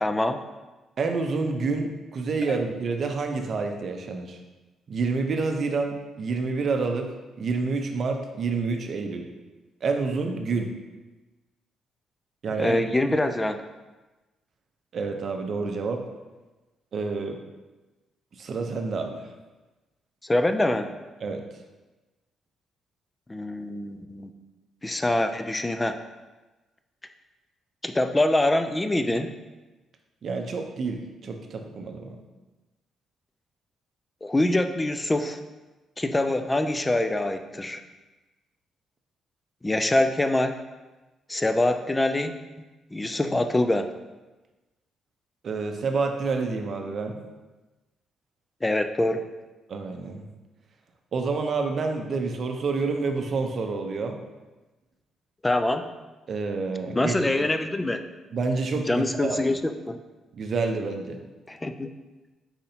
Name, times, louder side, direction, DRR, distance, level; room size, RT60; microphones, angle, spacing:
voice 1, 0.0-0.4 2.5-2.6 12.6-13.6 20.2-20.9 23.3-24.3 24.8-26.0 27.8-29.3 34.2-35.4 36.0-37.8 39.6-40.6 41.3-42.3 42.9-43.9 48.6-49.2 55.4-55.9 56.9-58.0 58.9-60.0 61.5-61.9, left 1 dB, 15° left, 8 dB, 0.3 m, -24 dB
voice 2, 1.0-4.4 4.9-7.1 7.4-9.3 9.8-10.7 12.4-12.8 14.9-16.0 16.9-17.4 18.4-19.2 21.2-21.4 30.2-32.2 45.4-47.2 49.7-50.3 51.1-54.2 56.3-57.5 58.3-59.4 60.4-61.2, right 4 dB, 55° right, 4 dB, 0.5 m, -28 dB
4.2 x 4.0 x 2.7 m, 1.2 s
cardioid pair, 90°, 0 cm